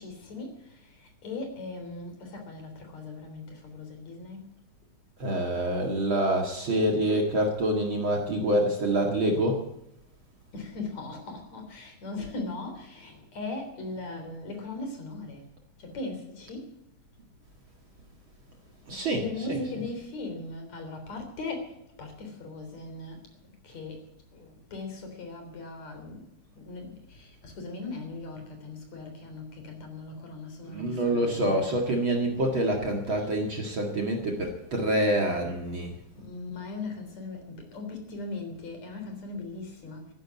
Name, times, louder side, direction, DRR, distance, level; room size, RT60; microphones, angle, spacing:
voice 1, 0.0-4.5 10.5-15.5 15.8-16.8 19.1-23.3 23.6-31.8 33.2-33.3 36.2-40.1, left 3 dB, 60° left, 4.8 m, -39 dB
voice 2, 5.2-9.6 18.9-19.8 30.7-35.9, right 1 dB, 45° right, 2.5 m, -26 dB
14.0 x 11.0 x 8.3 m
omnidirectional pair, 3.5 m